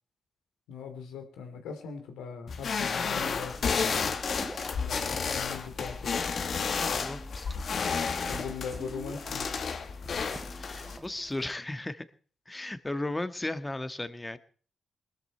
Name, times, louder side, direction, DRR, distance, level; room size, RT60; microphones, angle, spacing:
voice 1, 0.7-4.1 4.7-6.3 8.3-9.5, left 6 dB, 90° left, 5 dB, 3.3 m, -41 dB
sound 1, 2.5-11.0, left 5 dB, 60° left, 2.0 m, -31 dB
sound 2, 3.0-11.5, right 1 dB, 10° right, 3.0 m, -47 dB
voice 2, 3.8-4.2 6.9-7.5 10.6-12.0 12.5-14.4, left 2 dB, 20° left, 12 dB, 1.6 m, -36 dB
20.5 x 13.5 x 4.5 m, 0.43 s
supercardioid pair, 55°, 0 cm